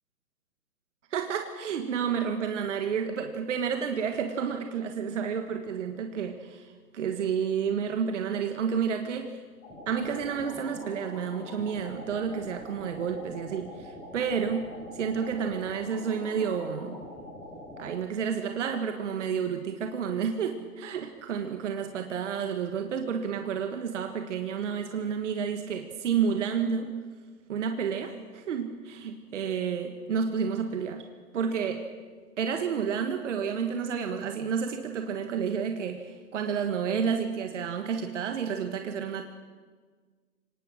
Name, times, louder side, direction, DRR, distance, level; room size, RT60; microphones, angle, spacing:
voice 1, 1.1-9.4 9.9-17.0 17.8-26.9 27.5-31.0 31.3-31.9 32.4-39.2, right 7 dB, 45° right, 6 dB, 1.5 m, -30 dB
sound 1, 9.6-17.9, left 1 dB, 15° left, 7.9 m, -44 dB
24.5 x 19.0 x 6.4 m, 1.5 s
hypercardioid pair, 155°, 49 cm